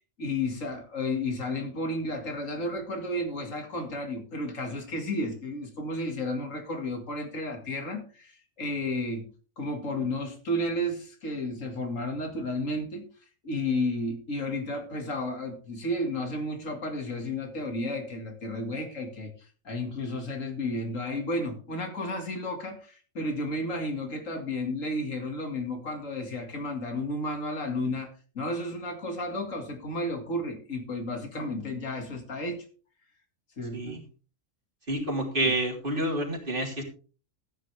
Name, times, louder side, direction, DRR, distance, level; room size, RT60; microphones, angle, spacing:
voice 1, 0.2-9.3 9.6-13.1 13.4-19.3 19.6-28.1 28.3-32.6 33.6-34.0, left 1 dB, 85° left, 5 dB, 2.5 m, -32 dB
voice 2, 34.9-36.8, right 1 dB, 40° right, 1 dB, 3.4 m, -28 dB
14.0 x 9.8 x 3.4 m, 0.37 s
omnidirectional pair, 1.3 m